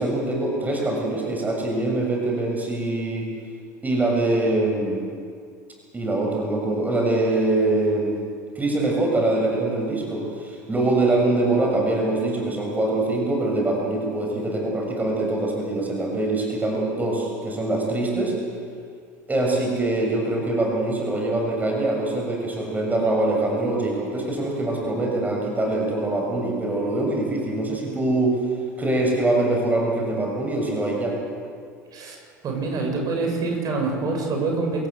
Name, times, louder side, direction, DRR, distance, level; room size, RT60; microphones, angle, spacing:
voice 1, 0.0-3.3 3.8-5.0 5.9-8.1 8.5-18.4 19.3-28.5 28.8-31.2, right 2 dB, 15° right, 0 dB, 6.6 m, -23 dB
voice 2, 32.4-34.9, right 3 dB, 45° right, 1 dB, 7.3 m, -25 dB
28.5 x 15.5 x 8.1 m, 2.2 s
hypercardioid pair, 75°, 9 cm